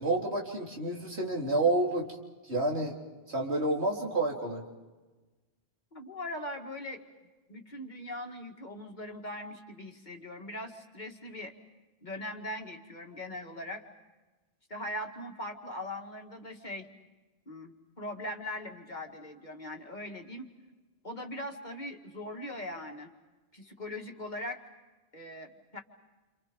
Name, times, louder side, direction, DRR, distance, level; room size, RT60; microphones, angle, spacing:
voice 1, 0.0-2.1 2.5-3.0 3.3-4.6, right 2 dB, 85° right, -1 dB, 4.1 m, -29 dB
voice 2, 5.9-7.0 7.5-11.5 12.0-13.8 14.7-16.9 17.5-20.5 21.0-23.1 23.5-24.6 25.1-25.8, left 1 dB, 45° left, 3 dB, 2.3 m, -40 dB
29.0 x 28.0 x 5.3 m, 1.2 s
omnidirectional pair, 1.1 m